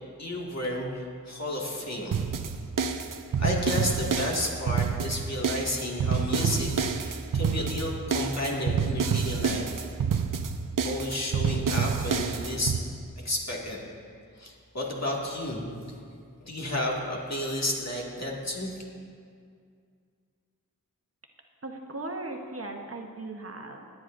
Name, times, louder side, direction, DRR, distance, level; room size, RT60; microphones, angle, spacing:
voice 1, 0.2-2.2 3.4-9.9 10.8-12.8 13.2-13.8 14.4-15.7 16.4-18.8, left 1 dB, 50° left, -3 dB, 2.1 m, -32 dB
sound 1, 2.1-12.8, right 6 dB, 70° right, 0.6 m, -28 dB
voice 2, 21.6-23.9, right 2 dB, 45° right, 3 dB, 1.0 m, -38 dB
18.5 x 9.4 x 2.6 m, 2.2 s
wide cardioid pair, 50°, 33 cm